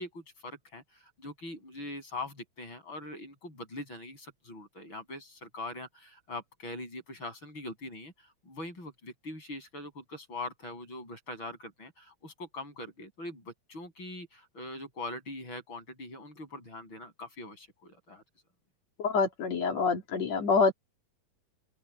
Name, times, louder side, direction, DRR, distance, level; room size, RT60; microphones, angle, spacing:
voice 1, 0.0-18.2, left 2 dB, 40° left, 8.8 m, -42 dB
voice 2, 19.0-20.7, left 4 dB, 65° left, 3.9 m, -26 dB
open air
omnidirectional pair, 3.3 m